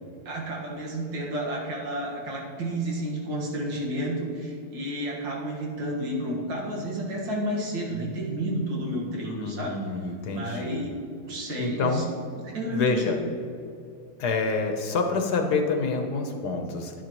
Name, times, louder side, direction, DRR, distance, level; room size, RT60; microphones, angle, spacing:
voice 1, 0.3-9.8 10.3-10.9 11.3-12.0 12.4-13.1, right 1 dB, 80° right, -2 dB, 2.4 m, -31 dB
voice 2, 9.4-10.8 11.6-12.0 12.7-13.2 14.2-16.9, left 4 dB, 65° left, 4 dB, 1.3 m, -27 dB
10.5 x 10.5 x 3.0 m, 2.6 s
omnidirectional pair, 2.0 m